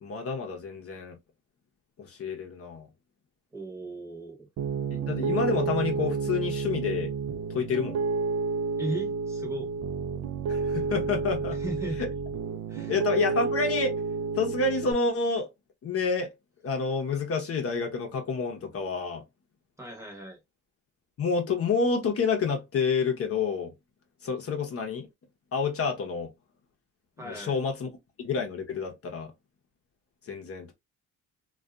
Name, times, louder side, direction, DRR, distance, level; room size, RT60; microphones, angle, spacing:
voice 1, 0.0-1.2 2.0-2.9 4.9-7.1 7.5-8.0 10.5-11.6 12.0-12.1 12.9-14.0 14.3-15.5 15.8-16.3 16.6-19.2 21.2-23.7 24.2-25.1 25.5-26.3 27.2-27.9 28.2-29.3 30.2-30.7, left 4 dB, 50° left, 0.7 m, -29 dB
voice 2, 3.5-4.5 8.7-9.7 11.6-12.0 12.7-12.9 19.8-20.4 27.2-27.6, right 2 dB, 10° right, 0.9 m, -36 dB
Piano, 4.6-14.9, right 4 dB, 60° right, 0.4 m, -30 dB
2.6 x 2.3 x 2.2 m
cardioid pair, 90°, 30 cm